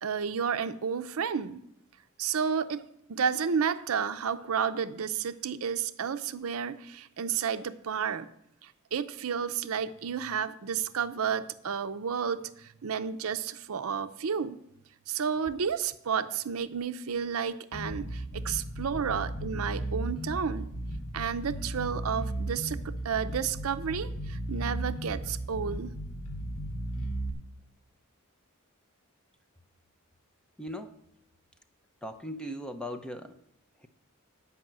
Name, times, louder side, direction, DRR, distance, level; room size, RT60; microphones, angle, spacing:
voice 1, 0.0-1.6 2.2-8.3 8.6-14.6 15.1-20.7 21.1-26.0, right 7 dB, 75° right, 12 dB, 0.6 m, -31 dB
Bass guitar, 17.7-27.3, right 1 dB, 70° left, 1.4 m, -35 dB
voice 2, 30.6-31.0 32.0-33.4 33.8-33.9, equal, 5° left, 7 dB, 0.6 m, -38 dB
9.1 x 5.5 x 7.4 m, 0.75 s
head